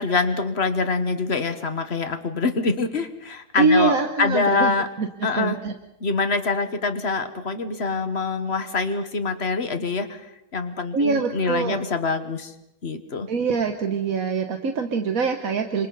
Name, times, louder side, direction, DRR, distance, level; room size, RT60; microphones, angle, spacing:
voice 1, 0.0-4.9 5.2-5.6 6.0-12.5 12.8-13.3, left 4 dB, 35° left, 8 dB, 1.5 m, -25 dB
voice 2, 3.6-4.7 5.0-5.7 10.9-11.8 13.3-15.9, right 4 dB, 50° right, 5 dB, 1.4 m, -23 dB
29.5 x 26.5 x 4.1 m, 0.88 s
omnidirectional pair, 2.3 m